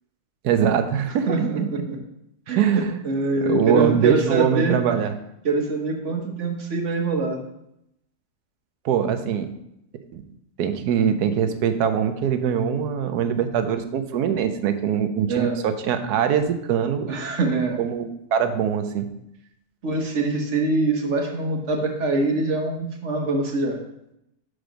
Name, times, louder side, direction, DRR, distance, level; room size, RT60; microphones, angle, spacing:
voice 1, 0.4-1.7 2.6-2.9 3.5-5.1 8.8-9.5 10.1-10.2 10.6-17.1 17.8-19.1, right 8 dB, 85° right, 9 dB, 1.2 m, -22 dB
voice 2, 1.3-2.0 2.5-4.8 5.4-7.4 15.3-15.6 17.1-17.8 19.8-23.8, right 3 dB, 55° right, 3 dB, 1.3 m, -24 dB
6.4 x 4.8 x 5.1 m, 0.81 s
omnidirectional pair, 1.6 m